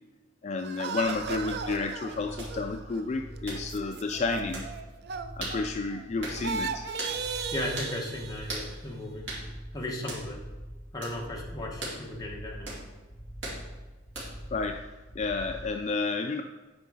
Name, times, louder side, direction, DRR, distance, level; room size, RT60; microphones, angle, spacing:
voice 1, 0.4-4.7 5.4-6.9 14.5-14.9 15.2-16.4, left 3 dB, 35° left, 5 dB, 0.3 m, -31 dB
sound 1, 0.6-6.0 6.3-8.8, right 5 dB, 55° right, 0.4 m, -37 dB
sound 2, 0.9-15.7, equal, 55° left, 2.6 m, -44 dB
sound 3, 2.4-2.5 3.5-3.6 4.5-4.7 5.4-5.6 6.2-6.4 7.0-7.2 7.8-7.9 8.5-8.7 9.3-9.4 10.1-10.3 11.0-11.2 11.8-12.0 12.7-12.8 13.4-13.6 14.1-14.4, right 2 dB, 70° right, 2.9 m, -37 dB
voice 2, 7.5-10.4 10.9-12.7, left 1 dB, 20° left, -2 dB, 1.2 m, -36 dB
9.2 x 4.6 x 4.8 m, 1.2 s
head